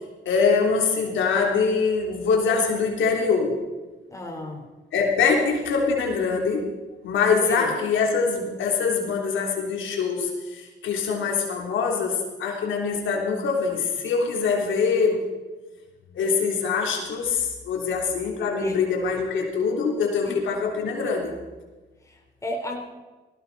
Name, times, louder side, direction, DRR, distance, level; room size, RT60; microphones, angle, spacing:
voice 1, 0.2-3.6 4.9-6.7 7.0-15.2 16.1-21.3, left 5 dB, 75° left, 0 dB, 3.3 m, -24 dB
voice 2, 4.1-4.6 7.4-7.7 18.6-18.8 20.3-20.4 22.4-22.8, left 1 dB, 15° left, 0 dB, 3.9 m, -32 dB
19.0 x 16.5 x 4.1 m, 1.2 s
cardioid pair, 90°, 20 cm